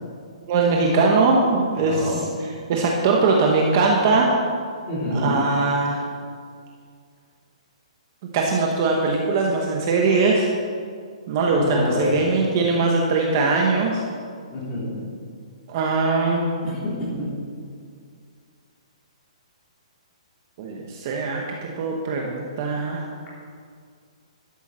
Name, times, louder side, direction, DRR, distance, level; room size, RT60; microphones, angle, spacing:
voice 1, 0.5-2.2 2.7-4.3 5.1-6.0 8.3-10.5 11.3-14.0 15.7-16.4 20.6-23.0, right 3 dB, 25° right, 0 dB, 1.0 m, -21 dB
voice 2, 1.8-2.2 4.9-5.4 11.6-12.2 14.5-15.0 16.6-17.3, left 1 dB, 15° left, -7 dB, 3.4 m, -26 dB
12.5 x 7.0 x 7.4 m, 2.1 s
hypercardioid pair, 180°, 4 cm